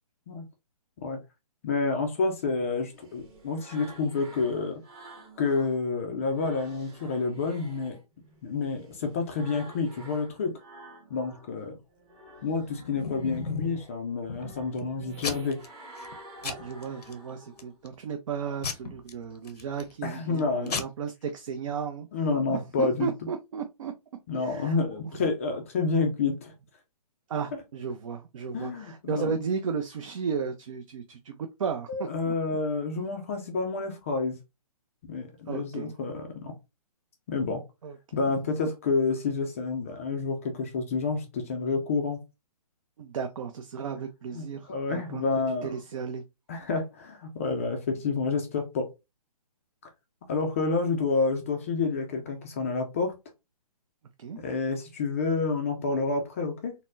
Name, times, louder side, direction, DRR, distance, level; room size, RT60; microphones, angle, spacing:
voice 1, 1.6-4.8 5.4-8.0 8.4-10.6 11.1-11.8 12.4-15.6 20.0-20.8 22.1-23.1 24.3-26.5 28.5-29.3 31.9-34.4 35.1-36.5 37.3-37.6 38.1-42.2 44.3-45.7 46.5-48.9 50.2-53.1 54.4-56.7, left 4 dB, 20° left, 0.3 m, -29 dB
sound 1, 2.4-5.8 6.2-11.5 11.9-17.8, right 1 dB, 15° right, 0.8 m, -50 dB
Packing tape duct tape / Tearing, 12.4-13.8 14.3-14.8 15.2-15.7 16.0-16.2 16.4-17.1 17.6-18.0 18.6-19.9 20.4-20.5 20.7-20.8, left 5 dB, 90° left, 0.7 m, -35 dB
voice 2, 16.4-22.1 22.5-23.9 24.4-25.0 27.3-32.3 35.5-35.9 37.8-38.0 43.0-45.3 45.6-46.2 54.2-54.4, right 6 dB, 55° right, 0.5 m, -34 dB
4.1 x 2.0 x 2.5 m
hypercardioid pair, 150°, 20 cm